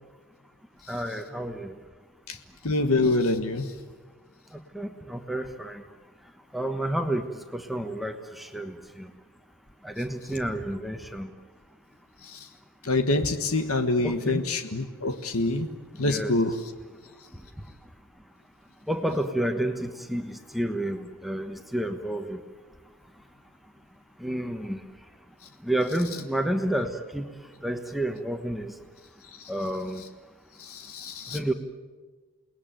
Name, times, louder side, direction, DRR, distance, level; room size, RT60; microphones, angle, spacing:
voice 1, 0.9-1.7 4.7-5.8 6.5-9.0 9.8-11.3 14.0-14.4 16.0-16.4 18.9-22.4 24.2-24.8 25.6-27.3 27.6-28.7 29.5-30.0 31.3-31.5, right 1 dB, ahead, 5 dB, 1.2 m, -30 dB
voice 2, 2.6-3.7 12.3-12.4 12.8-15.7 16.0-16.5 30.6-31.4, left 2 dB, 80° left, 8 dB, 1.5 m, -26 dB
29.0 x 20.0 x 9.1 m, 1.4 s
head